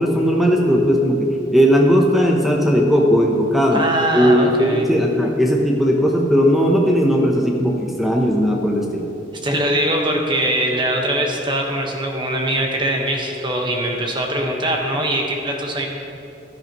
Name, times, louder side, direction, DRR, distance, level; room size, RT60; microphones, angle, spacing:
voice 1, 0.0-3.9 4.1-9.1, equal, ahead, 0 dB, 0.8 m, -17 dB
voice 2, 3.7-4.9 9.4-15.9, right 1 dB, 25° right, 1 dB, 1.3 m, -22 dB
15.5 x 11.0 x 3.0 m, 2.9 s
head